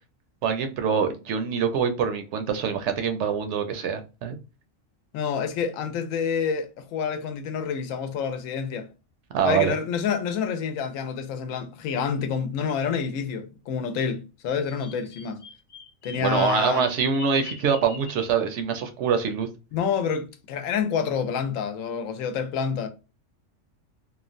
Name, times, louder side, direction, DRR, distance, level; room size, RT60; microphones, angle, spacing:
voice 1, 0.4-4.4 9.3-9.7 16.1-19.5, right 6 dB, 70° right, 0.8 m, -25 dB
voice 2, 5.1-8.9 9.4-15.4 16.0-16.9 19.7-22.9, left 6 dB, 85° left, 1.0 m, -28 dB
Bird vocalization bird call bird song, 14.5-18.4, left 6 dB, 60° left, 0.4 m, -44 dB
3.1 x 2.1 x 2.5 m
omnidirectional pair, 1.3 m